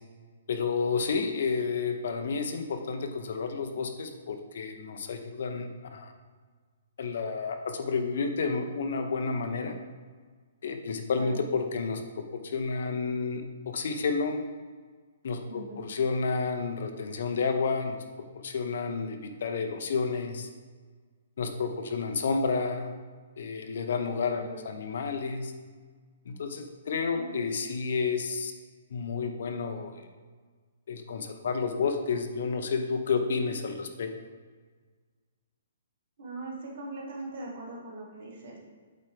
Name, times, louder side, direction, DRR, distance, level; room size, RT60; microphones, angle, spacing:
voice 1, 0.5-6.1 7.0-9.7 10.6-14.4 15.2-18.0 18.4-20.5 21.4-22.9 23.4-25.5 26.3-28.5 28.9-30.1 30.9-34.1, left 4 dB, 50° left, 6 dB, 0.7 m, -30 dB
voice 2, 15.5-15.8 24.3-24.6 27.1-27.3 36.2-38.6, right 2 dB, 45° right, -2 dB, 1.6 m, -41 dB
7.9 x 4.4 x 3.3 m, 1.5 s
hypercardioid pair, 180°, 0 cm